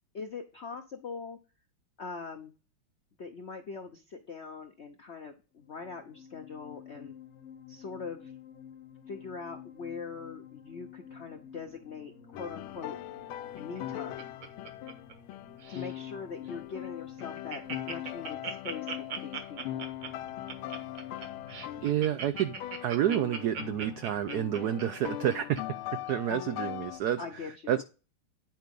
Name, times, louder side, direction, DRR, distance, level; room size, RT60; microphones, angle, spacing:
voice 1, 0.1-1.4 2.0-2.5 3.2-7.1 7.7-8.3 9.1-12.9 13.5-14.3 15.7-18.9 19.2-19.9 27.2-27.8, left 5 dB, 65° left, 5 dB, 0.6 m, -42 dB
sound 1, 5.6-24.0, left 8 dB, 50° left, 0.9 m, -51 dB
sound 2, 12.3-22.1 22.3-27.0, left 13 dB, 85° left, 1.4 m, -40 dB
Laughter, 13.6-15.3 15.6-16.0 16.4-16.5 16.8-16.9 17.2-25.6 26.1-26.2, right 5 dB, 65° right, 2.0 m, -39 dB
voice 2, 21.8-22.6 22.8-25.6 26.1-27.8, right 11 dB, 90° right, 12 dB, 0.8 m, -29 dB
9.3 x 4.7 x 5.2 m, 0.33 s
omnidirectional pair, 2.3 m